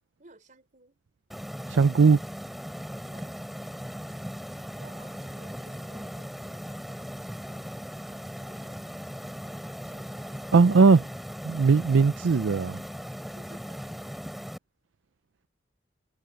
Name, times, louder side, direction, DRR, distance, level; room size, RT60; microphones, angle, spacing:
voice 1, 0.2-1.0 3.0-3.3 4.5-10.7 13.3-14.2, right 2 dB, 40° right, 4.7 m, -56 dB
sound 1, 1.3-14.6, equal, ahead, 3.2 m, -38 dB
voice 2, 1.7-2.2 10.5-11.0 11.4-12.8, right 4 dB, 85° right, 0.5 m, -19 dB
head